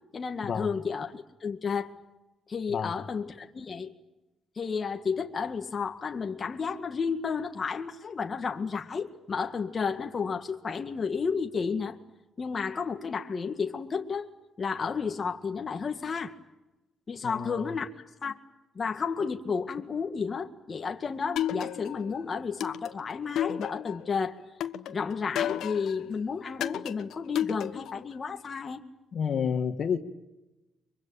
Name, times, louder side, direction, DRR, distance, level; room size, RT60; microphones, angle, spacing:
voice 1, 0.1-1.9 2.5-3.9 4.6-12.0 12.4-14.3 14.6-16.3 17.1-17.9 18.2-18.4 18.8-24.4 24.9-28.9, left 5 dB, 40° left, 2.0 m, -32 dB
voice 2, 17.2-17.7 29.1-30.0, left 7 dB, 55° left, 2.2 m, -29 dB
sound 1, 21.4-22.1 22.6-24.1 24.6-26.0 26.6-28.0, left 10 dB, 80° left, 1.3 m, -32 dB
24.5 x 24.0 x 9.0 m
cardioid pair, 90°, 0 cm